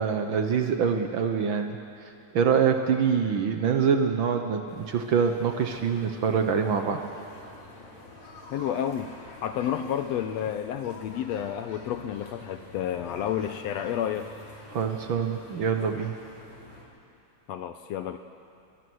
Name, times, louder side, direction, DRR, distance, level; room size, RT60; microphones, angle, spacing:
voice 1, 0.0-1.8 2.3-7.0 14.7-16.2, right 6 dB, 75° right, 5 dB, 1.1 m, -25 dB
sound 1, 4.7-16.8, left 2 dB, 55° left, 4.7 m, -47 dB
voice 2, 8.5-9.1 9.4-14.3 17.5-18.2, left 10 dB, 80° left, 8 dB, 1.6 m, -30 dB
29.0 x 22.0 x 6.3 m, 2.6 s
omnidirectional pair, 3.7 m